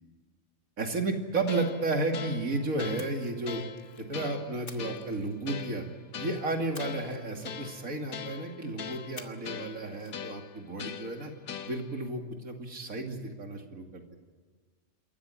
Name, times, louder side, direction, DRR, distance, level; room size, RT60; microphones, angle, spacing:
voice 1, 0.8-3.6 4.1-5.8 6.2-11.3 11.6-14.0, right 2 dB, 75° right, 3 dB, 3.0 m, -32 dB
sound 1, 1.5-12.1, left 8 dB, 85° left, 1.6 m, -42 dB
Splash splatter, 3.0-4.1 4.7-5.8 6.7-8.0 9.2-9.7 9.9-10.1, left 4 dB, 40° left, 1.5 m, -50 dB
27.5 x 14.0 x 10.0 m, 1.5 s
omnidirectional pair, 1.5 m